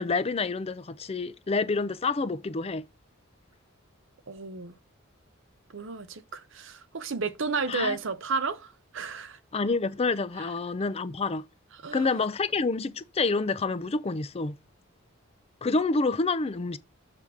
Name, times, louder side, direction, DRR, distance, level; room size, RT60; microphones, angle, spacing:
voice 1, 0.0-2.8 7.7-8.0 9.5-11.4 11.9-14.6 15.6-16.8, left 3 dB, 30° left, 0.5 m, -28 dB
voice 2, 4.3-4.7 5.7-9.4 11.8-12.1, right 4 dB, 65° right, 0.7 m, -32 dB
6.8 x 3.5 x 6.1 m
head